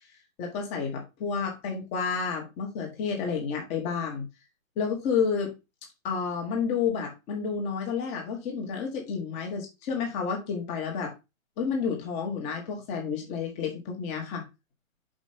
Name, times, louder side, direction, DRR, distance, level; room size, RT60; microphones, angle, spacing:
voice 1, 0.4-4.2 4.8-5.5 6.0-11.1 11.6-14.4, left 6 dB, 15° left, 1.6 m, -30 dB
5.2 x 5.2 x 5.4 m
figure-of-eight pair, 135°, 41 cm